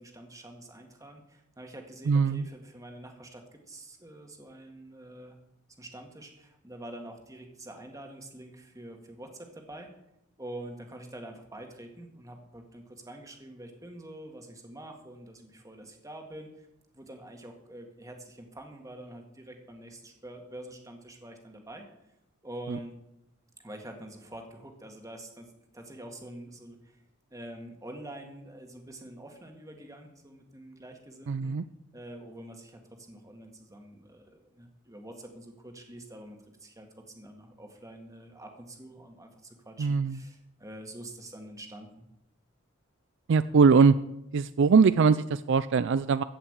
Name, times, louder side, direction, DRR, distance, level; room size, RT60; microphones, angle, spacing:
voice 1, 0.0-5.4 5.8-9.9 10.4-16.7 16.9-21.9 22.4-23.0 23.6-27.0 27.3-31.6 31.9-42.1, right 1 dB, 15° right, 3 dB, 1.8 m, -46 dB
voice 2, 2.1-2.5 31.3-31.6 39.8-40.2 43.3-43.9 44.3-46.2, right 5 dB, 60° right, 15 dB, 0.4 m, -21 dB
14.5 x 5.8 x 8.7 m, 0.85 s
head